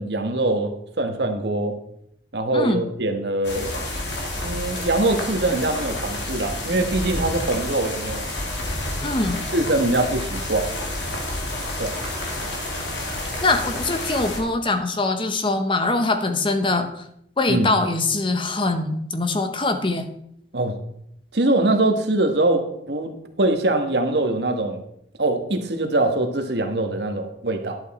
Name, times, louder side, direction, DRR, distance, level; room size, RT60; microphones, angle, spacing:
voice 1, 0.0-1.8 2.3-3.7 4.4-8.3 9.5-10.7 11.8-12.0 17.5-17.7 20.5-20.8 21.3-24.8 25.2-27.8, right 2 dB, 70° right, 5 dB, 1.4 m, -23 dB
sound 1, 3.4-14.4, left 1 dB, 90° left, 2.6 m, -29 dB
voice 2, 9.0-9.4 13.4-17.1 17.4-20.1, left 2 dB, 30° left, 7 dB, 0.9 m, -23 dB
11.0 x 8.0 x 4.3 m, 0.75 s
head